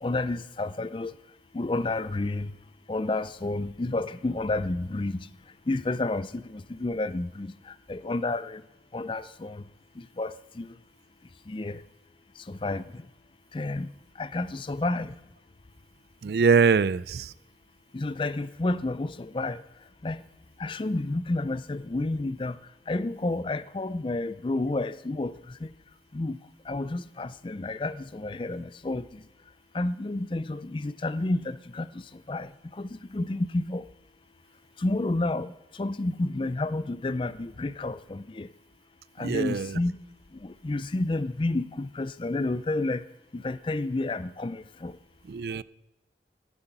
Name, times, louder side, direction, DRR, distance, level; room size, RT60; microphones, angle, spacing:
voice 1, 0.0-1.2 1.5-2.6 2.9-8.7 8.9-9.7 9.9-10.8 11.5-11.8 12.4-13.1 13.5-15.2 17.9-19.6 20.0-20.2 20.6-25.7 26.1-29.3 29.7-33.9 34.8-38.5 39.2-40.0 40.3-43.1 43.3-45.0, left 2 dB, 30° left, 0.4 m, -31 dB
voice 2, 16.2-17.3 39.2-39.7 45.3-45.6, right 5 dB, 65° right, 0.4 m, -23 dB
11.0 x 9.9 x 9.1 m
head